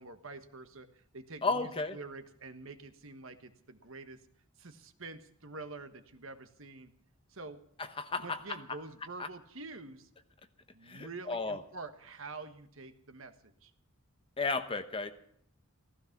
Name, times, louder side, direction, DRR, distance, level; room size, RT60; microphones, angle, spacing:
voice 1, 0.0-4.2 4.6-6.9 7.3-7.6 8.2-10.1 10.7-13.7, right 3 dB, 65° right, 9 dB, 1.4 m, -47 dB
voice 2, 1.4-2.0 8.0-8.8 9.2-9.3 10.9-11.6 14.4-15.1, left 3 dB, 25° left, 9 dB, 1.0 m, -34 dB
15.5 x 15.0 x 5.9 m, 0.67 s
head